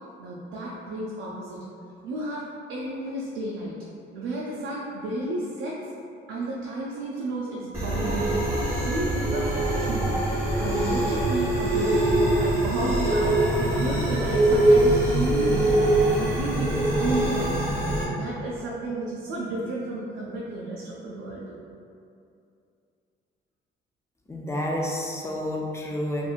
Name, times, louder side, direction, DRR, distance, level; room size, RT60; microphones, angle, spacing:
voice 1, 0.2-1.6 2.0-2.4 2.7-3.7 4.1-5.8 6.3-10.1 10.6-12.0 12.4-15.7 16.1-21.6, right 2 dB, 85° right, -5 dB, 0.4 m, -32 dB
sound 1, 7.7-18.0, right 1 dB, 15° right, 1.0 m, -23 dB
voice 2, 24.3-26.3, left 1 dB, 15° left, -1 dB, 0.4 m, -29 dB
2.9 x 2.5 x 2.3 m, 2.5 s
cardioid pair, 90°, 20 cm